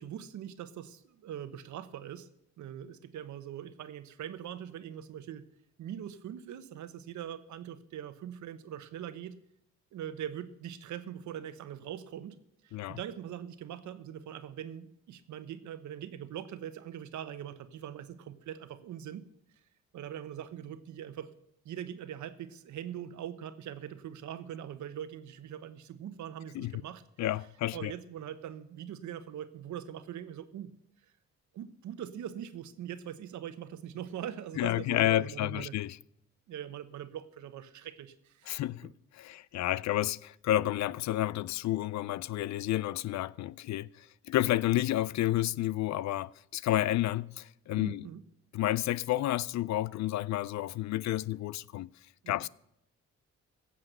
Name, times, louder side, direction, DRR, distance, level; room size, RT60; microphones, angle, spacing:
voice 1, 0.0-2.3 2.6-5.4 5.8-9.4 9.9-12.4 12.6-19.2 19.9-21.3 21.6-27.0 27.7-30.7 31.5-35.7 36.5-38.9 47.7-48.2 52.2-52.5, right 10 dB, 70° right, 1.1 m, -42 dB
voice 2, 27.2-27.9 34.6-36.0 38.5-48.1 48.5-51.9 52.3-52.5, left 14 dB, 65° left, 0.5 m, -30 dB
16.5 x 7.5 x 6.7 m
cardioid pair, 90°, 30 cm